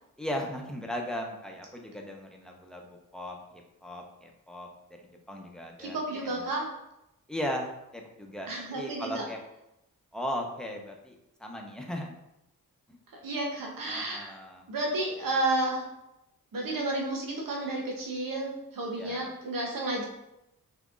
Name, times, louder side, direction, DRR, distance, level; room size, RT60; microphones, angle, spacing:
voice 1, 0.2-6.0 6.3-6.4 7.3-9.4 10.1-12.1 12.9-13.0 13.9-14.7 18.9-19.3, equal, ahead, 0 dB, 0.9 m, -37 dB
voice 2, 5.8-6.7 8.5-9.3 13.1-14.3 14.7-15.9 16.5-20.1, right 2 dB, 65° right, -1 dB, 0.9 m, -31 dB
6.0 x 2.9 x 2.5 m, 0.89 s
cardioid pair, 40°, 36 cm